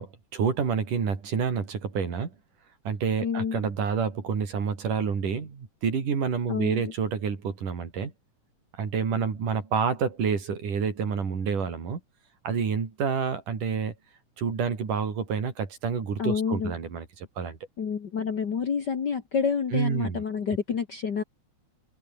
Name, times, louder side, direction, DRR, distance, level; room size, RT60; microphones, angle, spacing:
voice 1, 0.0-2.3 2.9-8.1 8.8-12.0 12.4-13.9 14.4-17.6 19.7-20.2, right 6 dB, 80° right, 5.4 m, -28 dB
voice 2, 3.2-3.6 6.5-6.8 16.2-16.7 17.8-21.2, left 6 dB, 45° left, 1.6 m, -28 dB
omnidirectional pair, 3.6 m